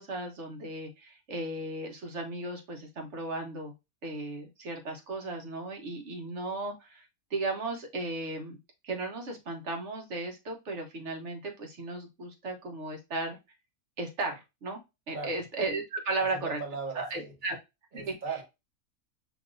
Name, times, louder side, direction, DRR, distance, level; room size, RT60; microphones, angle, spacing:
voice 1, 0.0-3.7 4.0-8.6 8.8-13.4 14.0-14.8 15.1-16.6 16.9-17.6 17.9-18.2, right 2 dB, 55° right, 1.3 m, -35 dB
voice 2, 15.1-15.4 16.3-17.3 17.9-18.4, right 5 dB, 35° right, 1.4 m, -38 dB
6.1 x 2.7 x 2.5 m
omnidirectional pair, 1.6 m